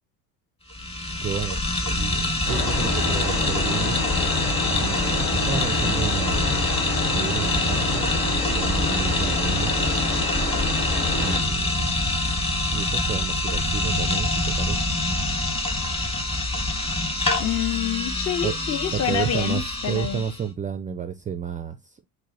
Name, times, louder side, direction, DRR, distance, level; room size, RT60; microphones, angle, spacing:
sound 1, 0.7-20.4, left 2 dB, 15° left, 1.3 m, -25 dB
voice 1, 1.2-4.0 4.8-6.7 7.1-8.1 8.5-9.8 11.1-12.0 12.7-14.9 18.4-18.6 18.9-22.0, right 7 dB, 20° right, 0.4 m, -31 dB
sound 2, 2.5-11.4, left 4 dB, 70° left, 1.3 m, -28 dB
voice 2, 17.4-20.2, left 10 dB, 35° left, 0.7 m, -27 dB
4.6 x 2.0 x 4.0 m
hypercardioid pair, 65°, 42 cm